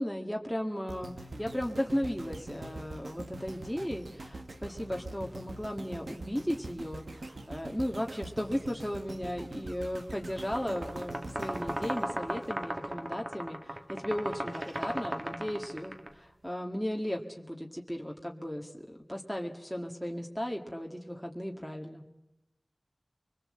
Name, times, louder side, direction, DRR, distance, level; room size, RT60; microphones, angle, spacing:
voice 1, 0.0-22.0, equal, ahead, 1 dB, 1.8 m, -36 dB
sound 1, 0.9-13.1 13.6-13.7, right 2 dB, 80° right, 1.4 m, -44 dB
sound 2, 10.4-16.1, right 1 dB, 40° right, 1.9 m, -36 dB
24.0 x 21.0 x 7.7 m, 0.92 s
wide cardioid pair, 45°, 0 cm